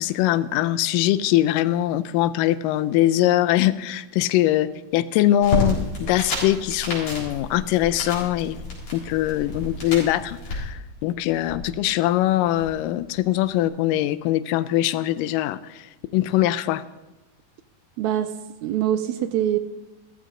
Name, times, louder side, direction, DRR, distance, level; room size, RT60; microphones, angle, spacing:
voice 1, 0.0-8.6 8.9-16.8, left 13 dB, 85° left, 12 dB, 2.2 m, -22 dB
sound 1, 5.4-10.6, left 2 dB, 45° left, 4.9 m, -30 dB
sound 2, 8.5-13.7, equal, 15° right, 4.2 m, -45 dB
voice 2, 18.0-18.3 18.6-19.6, right 11 dB, 80° right, 10 dB, 1.7 m, -23 dB
14.5 x 14.5 x 3.8 m, 1.1 s
omnidirectional pair, 3.8 m